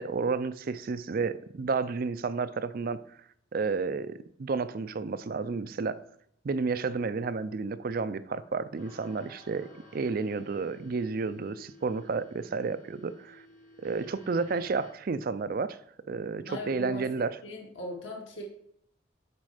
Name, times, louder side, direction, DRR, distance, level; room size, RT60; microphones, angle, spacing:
voice 1, 0.0-3.0 3.5-6.0 6.4-13.4 13.8-15.8 16.1-17.3, right 4 dB, 50° right, 0.4 m, -31 dB
sound 1, 8.8-14.9, left 1 dB, 35° left, 1.2 m, -55 dB
voice 2, 16.4-18.4, left 1 dB, 70° left, 2.0 m, -40 dB
7.4 x 5.2 x 4.9 m
head